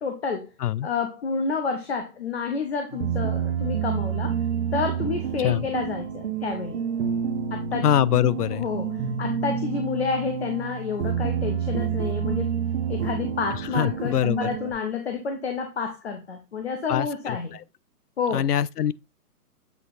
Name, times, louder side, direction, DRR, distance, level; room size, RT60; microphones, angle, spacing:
voice 1, 0.0-0.5 0.8-4.3 4.7-6.8 7.5-7.9 8.5-8.9 9.2-12.6 12.9-17.6 18.2-18.4, left 5 dB, 45° left, 1.0 m, -29 dB
sound 1, 2.9-14.7, right 7 dB, 45° right, 1.1 m, -28 dB
voice 2, 7.8-8.7 13.7-14.5 16.9-17.6 18.3-18.9, left 11 dB, 80° left, 0.6 m, -23 dB
8.1 x 3.2 x 4.0 m
hypercardioid pair, 175°, 46 cm